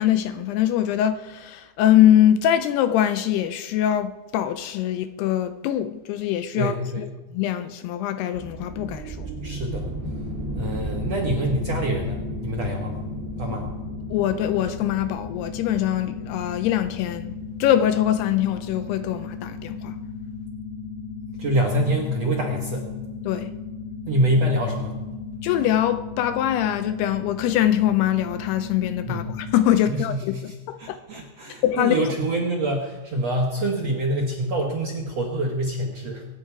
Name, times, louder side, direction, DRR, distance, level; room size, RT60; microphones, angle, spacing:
voice 1, 0.0-9.3 14.1-20.0 23.3-23.5 25.4-31.0 31.6-32.0, left 11 dB, 80° left, 2.5 m, -23 dB
voice 2, 6.6-7.0 9.4-9.9 10.6-13.0 13.4-13.7 21.4-22.9 24.1-25.0 29.1-29.3 29.9-30.4 30.8-36.3, right 1 dB, 60° right, 1.8 m, -25 dB
sound 1, 8.3-19.8, right 2 dB, 25° right, 1.3 m, -36 dB
sound 2, 10.0-29.8, left 5 dB, 60° left, 2.5 m, -36 dB
23.5 x 10.0 x 4.8 m
omnidirectional pair, 5.0 m